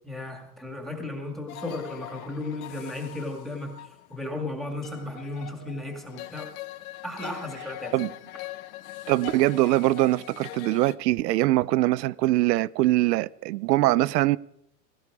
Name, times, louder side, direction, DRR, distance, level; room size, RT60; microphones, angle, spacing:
voice 1, 0.0-3.8 4.1-6.5 7.0-7.9, left 2 dB, ahead, 2.2 m, -35 dB
sound 1, 1.5-11.0, left 15 dB, 60° left, 1.1 m, -42 dB
voice 2, 9.1-14.4, right 17 dB, 90° right, 0.7 m, -22 dB
17.5 x 16.5 x 4.8 m
supercardioid pair, 165°, 48 cm